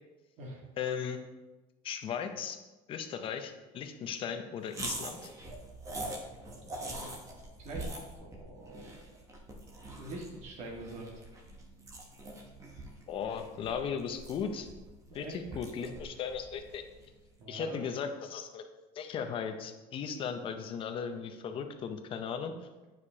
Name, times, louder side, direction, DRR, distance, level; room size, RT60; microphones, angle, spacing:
voice 1, 0.8-1.2 1.8-2.6 2.9-5.3 13.1-14.7 15.1-16.8 17.5-18.6 18.9-22.5, left 7 dB, 40° left, 7 dB, 0.7 m, -37 dB
sound 1, 4.7-17.2, right 2 dB, 25° right, 1.0 m, -44 dB
voice 2, 6.6-7.1 7.6-7.9 8.2-9.0 10.0-11.2 15.1-15.4 15.8-15.9 17.4-17.8, right 2 dB, 55° right, -1 dB, 1.8 m, -44 dB
9.0 x 4.9 x 2.8 m, 1.2 s
cardioid pair, 135°, 14 cm